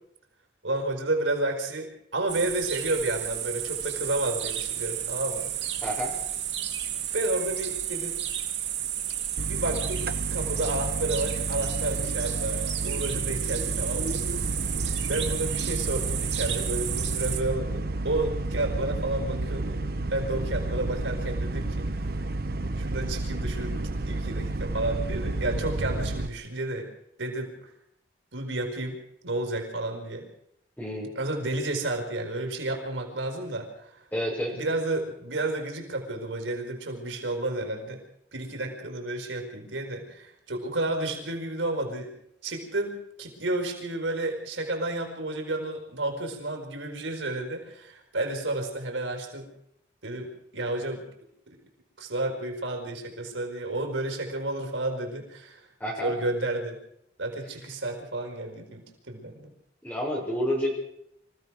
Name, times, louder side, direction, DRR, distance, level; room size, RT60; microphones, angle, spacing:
voice 1, 0.6-5.7 7.1-8.2 9.4-14.5 15.1-19.8 20.1-22.1 22.8-23.8 24.1-26.9 27.2-27.7 28.3-30.2 31.2-33.9 34.5-38.0 38.3-42.1 42.4-49.5 50.0-51.0 52.0-55.6 56.0-56.8 57.2-59.5, right 2 dB, 80° right, 3 dB, 4.8 m, -31 dB
sound 1, 2.3-17.4, right 11 dB, 65° right, 2.8 m, -32 dB
voice 2, 5.8-6.1 30.8-31.1 34.1-34.5 55.8-56.1 59.8-60.7, equal, 10° left, -2 dB, 6.6 m, -29 dB
sound 2, 9.4-26.3, right 2 dB, 50° right, 0.9 m, -31 dB
26.0 x 16.0 x 6.4 m, 0.75 s
head